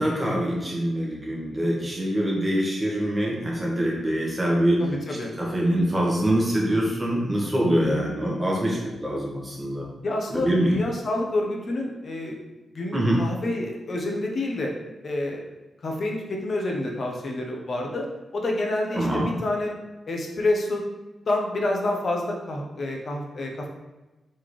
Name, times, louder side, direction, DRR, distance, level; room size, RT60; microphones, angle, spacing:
voice 1, 0.0-4.8 5.4-9.8 10.3-10.7 12.9-13.2 18.9-19.3, right 1 dB, 15° right, -3 dB, 1.2 m, -24 dB
voice 2, 4.8-5.3 7.8-8.1 10.0-12.4 12.7-14.7 15.0-15.4 15.8-18.1 18.3-19.7 20.1-20.8 21.2-23.7, left 2 dB, 50° left, 0 dB, 0.9 m, -28 dB
4.3 x 3.7 x 3.2 m, 1.1 s
wide cardioid pair, 115°, 0 cm